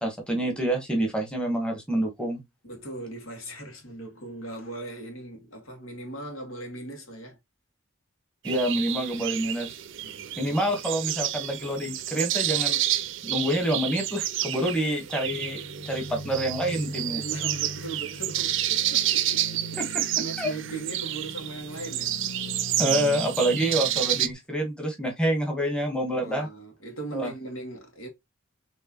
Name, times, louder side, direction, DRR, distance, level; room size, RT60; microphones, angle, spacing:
voice 1, 0.0-2.4 8.4-9.7 10.4-12.8 13.2-17.2 19.8-20.5 22.8-26.5 27.1-27.3, right 1 dB, 5° left, 1.1 m, -27 dB
voice 2, 2.6-7.4 10.0-10.6 17.2-19.8 20.2-22.2 26.1-28.1, right 2 dB, 85° left, 2.0 m, -39 dB
sound 1, 8.4-24.3, right 13 dB, 65° right, 0.5 m, -30 dB
sound 2, 15.2-24.3, equal, 55° left, 0.9 m, -41 dB
4.6 x 3.2 x 2.9 m
head